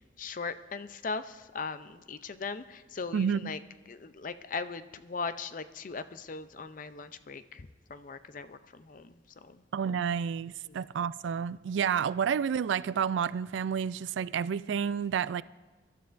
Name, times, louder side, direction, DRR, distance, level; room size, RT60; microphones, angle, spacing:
voice 1, 0.2-3.6 3.9-9.1 9.4-9.6 10.7-10.8, left 4 dB, 45° left, 0.5 m, -39 dB
voice 2, 3.1-3.6 9.7-15.4, right 7 dB, 75° right, 0.3 m, -30 dB
24.0 x 12.5 x 2.5 m
head